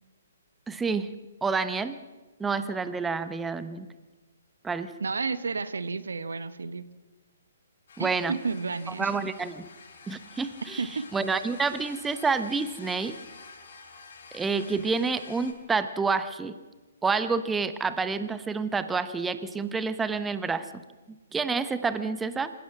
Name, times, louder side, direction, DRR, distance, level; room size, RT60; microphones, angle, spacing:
voice 1, 0.7-1.1 1.4-2.0 2.4-3.9 4.6-4.9 8.0-8.3 9.0-9.7 10.1-10.8 11.1-13.2 14.3-16.5 17.0-20.7 21.3-22.5, right 4 dB, 10° right, 12 dB, 1.0 m, -28 dB
voice 2, 5.0-6.8 8.0-9.1 10.8-11.1, right 4 dB, 70° right, 14 dB, 1.1 m, -31 dB
sound 1, 7.9-15.5, left 4 dB, 55° left, 7.4 m, -49 dB
28.0 x 16.5 x 6.1 m, 1.2 s
figure-of-eight pair, 130°, 0 cm